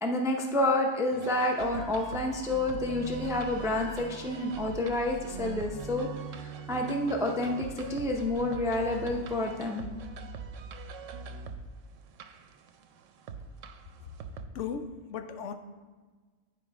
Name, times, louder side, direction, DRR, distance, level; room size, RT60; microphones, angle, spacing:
voice 1, 0.0-6.1 6.7-9.8, left 2 dB, 5° right, 2 dB, 0.4 m, -29 dB
sound 1, 1.1-14.5, right 5 dB, 80° right, 0.9 m, -42 dB
voice 2, 14.5-15.5, left 7 dB, 75° left, 8 dB, 0.9 m, -36 dB
9.5 x 4.9 x 3.4 m, 1.4 s
omnidirectional pair, 1.3 m